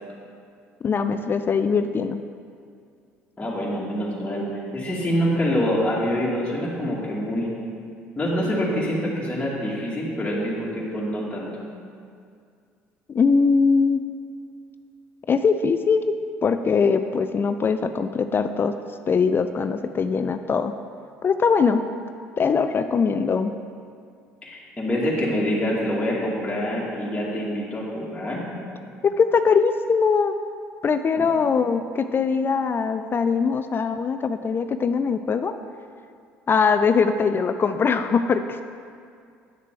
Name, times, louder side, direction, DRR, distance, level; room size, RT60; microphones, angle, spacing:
voice 1, 0.8-2.2 13.1-14.0 15.3-18.7 19.1-20.7 21.2-21.8 22.4-23.5 29.0-30.3 30.8-35.5 36.5-38.6, left 5 dB, 35° left, 9 dB, 0.4 m, -21 dB
voice 2, 3.4-4.5 4.7-7.5 8.2-11.5 24.4-28.4 31.2-31.3, equal, 15° left, -7 dB, 2.4 m, -25 dB
9.0 x 6.6 x 4.8 m, 2.3 s
hypercardioid pair, 60°, 6 cm